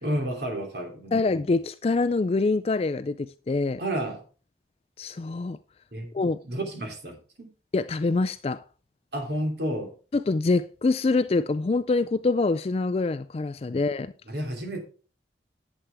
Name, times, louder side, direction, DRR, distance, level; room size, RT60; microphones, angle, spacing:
voice 1, 0.0-1.3 3.8-4.2 5.9-6.1 6.4-7.5 9.1-9.9 13.7-13.8 14.3-14.8, right 1 dB, 70° right, 2.9 m, -31 dB
voice 2, 1.1-3.8 5.0-5.6 6.1-6.4 7.7-8.6 10.1-14.1, left 3 dB, 35° left, 0.4 m, -25 dB
11.0 x 8.2 x 3.4 m
head